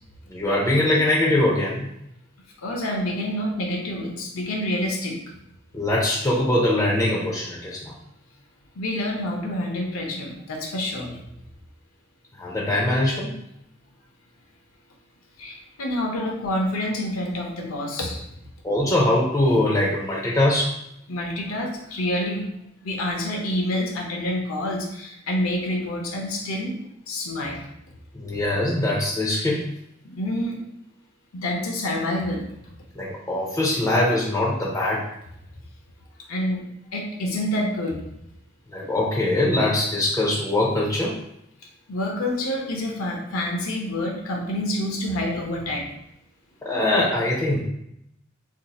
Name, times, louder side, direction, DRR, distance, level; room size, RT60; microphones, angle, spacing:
voice 1, 0.3-1.9 5.7-7.9 12.4-13.3 16.2-16.3 18.6-20.7 28.1-29.6 33.0-35.0 38.7-41.2 46.6-47.6, left 1 dB, 15° left, -4 dB, 0.4 m, -22 dB
voice 2, 2.6-5.2 8.8-11.2 15.4-18.2 21.1-22.5 22.8-26.7 27.1-27.7 30.0-30.6 31.3-32.7 36.3-36.6 36.9-38.0 41.9-45.9, left 1 dB, 85° left, 1 dB, 0.6 m, -27 dB
2.6 x 2.3 x 4.0 m, 0.79 s
head